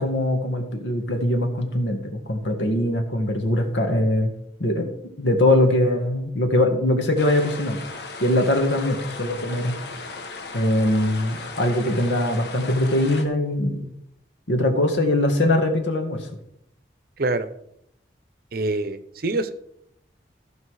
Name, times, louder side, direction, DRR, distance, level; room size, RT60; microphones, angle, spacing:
voice 1, 0.0-4.3 4.6-4.9 5.2-7.8 8.2-9.7 10.5-13.9 14.5-16.3, left 1 dB, 90° left, 4 dB, 1.8 m, -22 dB
sound 1, 7.2-13.2, left 3 dB, 65° left, 1.2 m, -36 dB
voice 2, 17.2-17.5 18.5-19.5, right 2 dB, 55° right, 12 dB, 0.7 m, -25 dB
14.5 x 5.3 x 4.8 m, 0.77 s
head